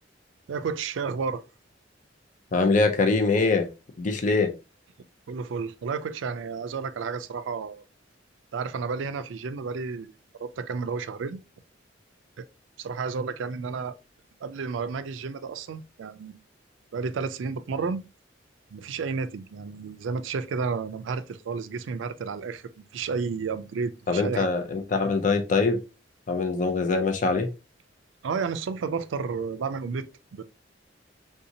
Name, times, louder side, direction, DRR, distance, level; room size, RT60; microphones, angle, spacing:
voice 1, 0.5-1.4 5.3-7.8 8.5-10.1 10.4-11.4 12.4-12.5 12.8-14.0 14.4-16.4 16.9-18.0 18.7-24.5 28.2-30.4, right 5 dB, 75° right, 0.4 m, -31 dB
voice 2, 2.5-3.7 4.0-4.5 24.1-25.8 26.3-27.5, left 3 dB, 40° left, 0.4 m, -23 dB
3.5 x 2.8 x 2.6 m
head